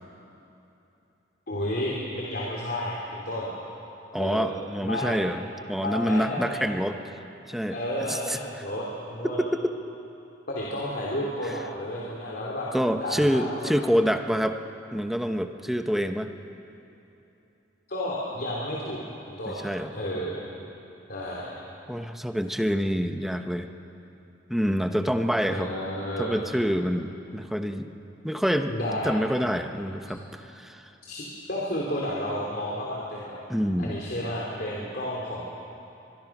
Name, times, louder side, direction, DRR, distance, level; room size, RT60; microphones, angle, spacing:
voice 1, 1.5-3.5 4.2-4.5 4.8-5.1 5.8-6.7 7.7-9.4 10.5-12.7 12.9-13.7 17.9-19.0 19.3-19.6 19.9-20.5 21.1-21.5 25.5-26.3 28.7-29.1 31.0-33.4 33.8-35.4, left 1 dB, 60° left, -4 dB, 3.1 m, -31 dB
voice 2, 4.1-7.0 7.5-8.4 9.4-9.7 12.7-14.6 14.9-16.3 19.5-19.9 21.9-23.7 24.5-25.7 26.2-27.9 28.2-28.8 29.0-30.8 33.5-34.0, equal, ahead, 6 dB, 1.0 m, -27 dB
23.5 x 22.5 x 6.1 m, 2.9 s
head